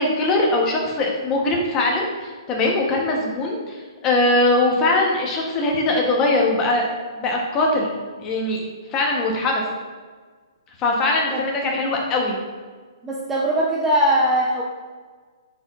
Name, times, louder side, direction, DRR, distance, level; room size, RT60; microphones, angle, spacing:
voice 1, 0.0-6.9 7.1-7.9 8.2-8.6 8.9-9.6 10.8-12.4, left 2 dB, 15° left, 0 dB, 0.8 m, -21 dB
voice 2, 13.0-14.6, right 1 dB, 5° right, -5 dB, 0.4 m, -21 dB
9.1 x 4.5 x 2.3 m, 1.5 s
hypercardioid pair, 170°, 3 cm